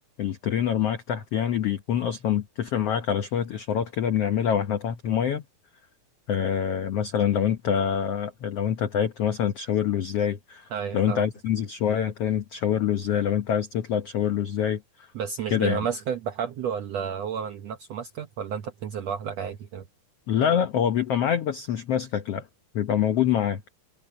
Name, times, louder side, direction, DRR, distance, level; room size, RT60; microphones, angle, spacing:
voice 1, 0.2-5.4 6.3-15.1 15.5-15.8 20.3-22.5 22.7-23.6, left 9 dB, 80° left, 1.3 m, -25 dB
voice 2, 10.7-11.3 15.1-19.8 21.7-21.8, right 7 dB, 75° right, 1.5 m, -31 dB
omnidirectional pair, 4.2 m